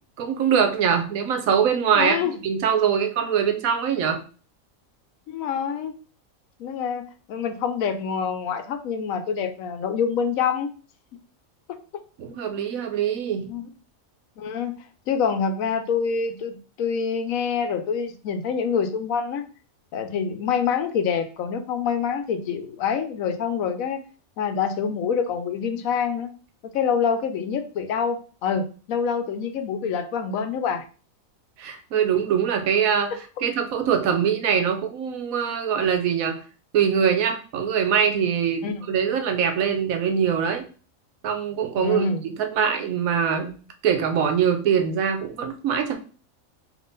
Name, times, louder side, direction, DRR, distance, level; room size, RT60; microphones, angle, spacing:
voice 1, 0.2-2.2 2.4-4.2 12.2-13.5 31.6-36.4 36.7-40.7 41.2-43.6 43.8-45.9, right 7 dB, 80° right, 6 dB, 1.1 m, -23 dB
voice 2, 1.9-2.3 5.3-5.9 6.6-10.7 13.5-13.7 14.4-14.8 15.1-19.4 19.9-24.0 24.4-26.3 26.6-30.8 38.6-38.8 41.7-42.2, left 6 dB, 80° left, 8 dB, 1.0 m, -26 dB
3.7 x 2.9 x 3.9 m, 0.37 s
omnidirectional pair, 1.4 m